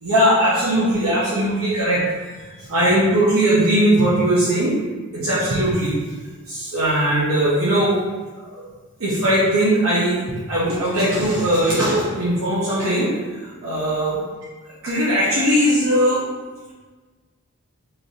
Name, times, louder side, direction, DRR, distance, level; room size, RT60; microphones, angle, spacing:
voice 1, 0.0-2.0 2.4-4.7 5.1-5.9 6.5-7.9 8.3-8.6 9.0-10.2 10.5-14.2 14.8-16.2, right 1 dB, 65° right, -9 dB, 0.8 m, -19 dB
3.2 x 2.6 x 4.0 m, 1.3 s
head